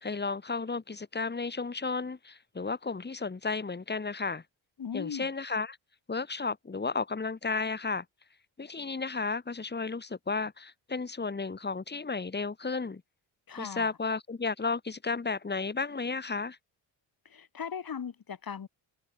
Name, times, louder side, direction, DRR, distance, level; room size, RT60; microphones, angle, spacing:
voice 1, 0.0-4.4 4.9-5.8 6.1-8.0 8.6-13.0 13.6-16.6, left 4 dB, 20° left, 2.5 m, -33 dB
voice 2, 4.8-5.3 13.5-13.9 17.2-18.7, left 7 dB, 45° left, 4.7 m, -38 dB
cardioid pair, 80°, 47 cm